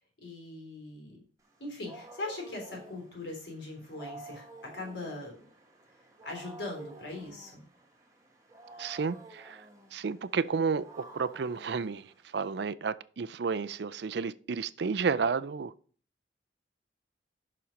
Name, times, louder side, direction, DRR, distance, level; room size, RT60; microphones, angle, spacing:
voice 1, 0.2-1.2 1.6-5.4 6.2-7.6, left 2 dB, 70° left, 3.6 m, -40 dB
Wild animals, 1.4-12.7, right 1 dB, 20° right, 1.6 m, -51 dB
voice 2, 8.8-9.6 9.9-15.7, right 5 dB, 65° right, 0.4 m, -32 dB
7.0 x 6.1 x 5.1 m
head